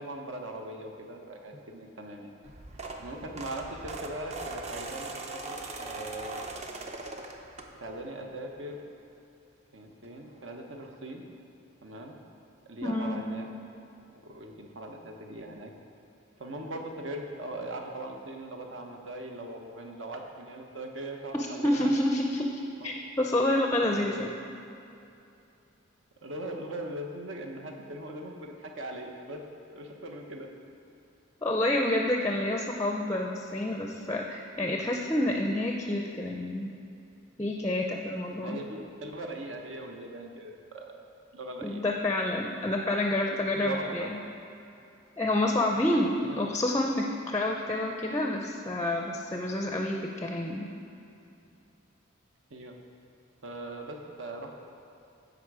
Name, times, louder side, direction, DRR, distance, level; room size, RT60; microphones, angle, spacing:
voice 1, 0.0-2.3 3.0-6.5 7.8-8.8 9.7-11.3 11.8-12.2 12.6-13.5 14.1-15.7 16.4-21.9 22.8-22.9 23.8-24.3 26.2-29.4 29.7-30.5 38.4-41.8 43.6-44.1 46.2-46.4 52.5-52.8 53.4-54.6, right 1 dB, 70° right, 2 dB, 1.0 m, -40 dB
sound 1, 2.4-8.1 8.5-8.8 10.0-10.1 10.4-10.5 10.8-10.9, right 2 dB, 30° right, 0.6 m, -40 dB
voice 2, 12.8-13.2 21.3-24.3 31.4-36.7 37.4-38.6 41.6-44.2 45.2-50.7, left 1 dB, 15° left, 1 dB, 0.5 m, -28 dB
15.5 x 5.1 x 4.8 m, 2.7 s
head